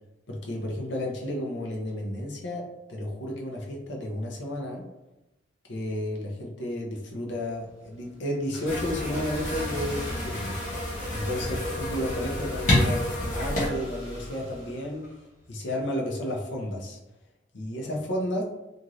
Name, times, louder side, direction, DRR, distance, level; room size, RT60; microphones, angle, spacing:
voice 1, 0.3-4.8 5.7-10.5 11.1-15.1 15.5-17.0 17.5-18.4, left 1 dB, 70° left, -1 dB, 0.6 m, -32 dB
Car / Engine starting, 7.3-15.4, equal, 5° right, 0.9 m, -42 dB
sound 1, 8.7-13.7, left 1 dB, 40° left, 0.9 m, -29 dB
2.6 x 2.5 x 3.0 m, 0.97 s
head